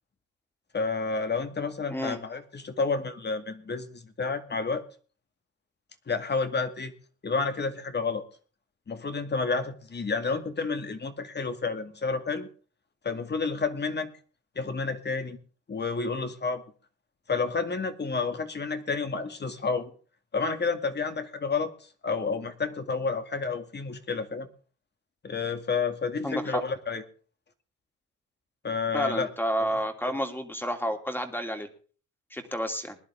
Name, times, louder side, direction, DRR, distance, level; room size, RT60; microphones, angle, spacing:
voice 1, 0.7-4.8 6.1-6.9 7.2-8.2 8.9-12.5 13.0-14.1 14.6-15.4 15.7-16.6 17.3-19.9 20.3-21.7 22.0-24.5 25.2-27.0 28.6-29.3, left 4 dB, 35° left, 8 dB, 2.2 m, -30 dB
voice 2, 1.9-2.2 26.2-26.6 28.9-31.7 32.3-33.0, equal, 5° left, 6 dB, 2.9 m, -30 dB
20.5 x 11.0 x 3.5 m, 0.40 s
cardioid pair, 90°, 30 cm